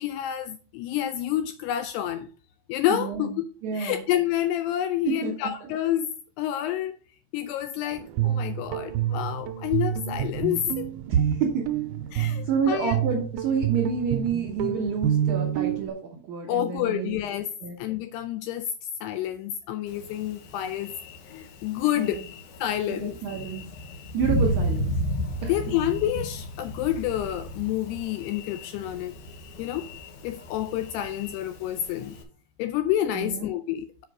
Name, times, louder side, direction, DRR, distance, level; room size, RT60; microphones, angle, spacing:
voice 1, 0.0-2.3 2.7-3.5 3.7-7.0 7.3-10.9 12.1-13.0 16.5-18.7 19.0-20.9 21.3-22.2 22.6-23.1 25.5-29.2 29.6-29.9 30.2-32.2 32.6-34.0, left 11 dB, 85° left, 2.4 m, -28 dB
voice 2, 2.9-3.4 3.6-4.0 5.0-5.5 11.1-11.7 12.4-17.2 17.6-17.8 22.0-22.2 22.9-23.7 24.1-24.9 25.4-25.5 33.1-33.5, right 6 dB, 70° right, 1.8 m, -28 dB
Guitar, 7.9-15.9, right 10 dB, 90° right, 2.2 m, -28 dB
Thunder, 19.9-32.2, equal, 65° left, 2.5 m, -34 dB
7.4 x 5.3 x 4.9 m
omnidirectional pair, 5.1 m